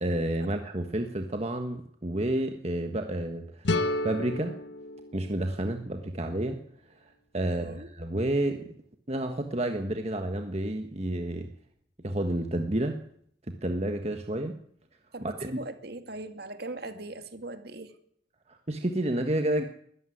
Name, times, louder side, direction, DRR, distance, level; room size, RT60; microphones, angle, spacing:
voice 1, 0.0-3.6 4.0-4.5 5.1-6.6 7.3-8.6 9.1-11.5 12.0-13.0 13.5-14.5 15.2-15.6 18.5-19.6, right 1 dB, 35° right, 1.4 m, -30 dB
sound 1, 3.6-6.5, left 2 dB, 70° left, 1.2 m, -32 dB
voice 2, 7.6-7.9 15.1-17.9, right 2 dB, 55° right, 2.4 m, -40 dB
21.5 x 14.0 x 9.9 m
head